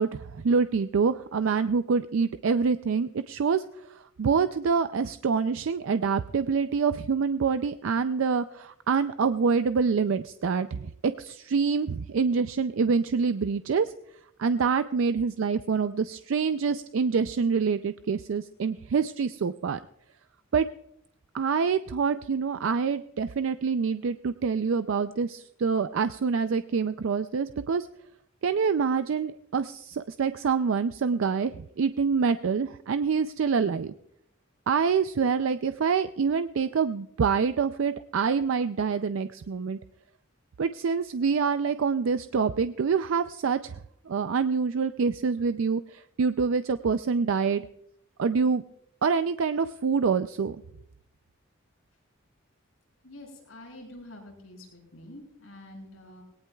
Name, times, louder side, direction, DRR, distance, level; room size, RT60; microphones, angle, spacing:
voice 1, 0.0-3.6 3.9-13.9 14.4-19.8 20.5-20.7 21.3-27.9 28.4-33.9 34.7-39.8 40.6-43.8 44.1-47.6 48.2-48.6 49.0-50.6, right 5 dB, 70° right, 11 dB, 0.4 m, -26 dB
voice 2, 53.0-56.2, left 1 dB, 90° left, 0 dB, 5.8 m, -47 dB
20.0 x 18.0 x 2.3 m, 0.77 s
head